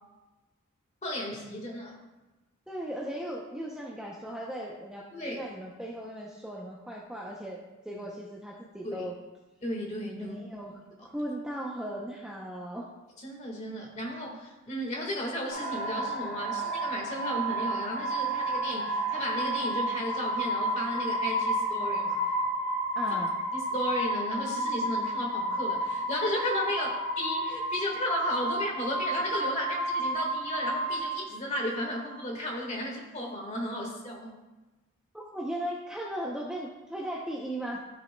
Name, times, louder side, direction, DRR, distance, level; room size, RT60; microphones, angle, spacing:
voice 1, 1.0-2.0 5.1-5.5 7.9-8.0 8.8-9.1 9.6-10.4 11.0-11.1 13.2-22.2 23.5-26.9 27.2-34.4, left 1 dB, 35° left, 0 dB, 1.7 m, -34 dB
voice 2, 2.7-7.6 7.8-9.1 10.1-12.9 22.9-23.4 35.1-37.9, right 1 dB, 5° right, -3 dB, 0.6 m, -37 dB
sound 1, 15.5-32.1, right 1 dB, 70° left, 2.6 m, -31 dB
12.5 x 6.3 x 2.3 m, 1.1 s
head